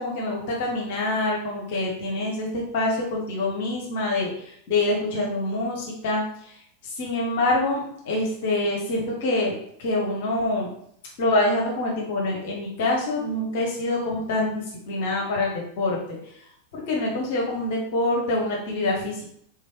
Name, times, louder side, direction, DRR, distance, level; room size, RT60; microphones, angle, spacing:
voice 1, 0.0-6.6 6.8-10.7 11.2-16.0 16.2-16.4 16.7-19.3, left 2 dB, 50° left, -2 dB, 0.9 m, -26 dB
3.8 x 3.0 x 3.0 m, 0.70 s
figure-of-eight pair, 90°, 0 cm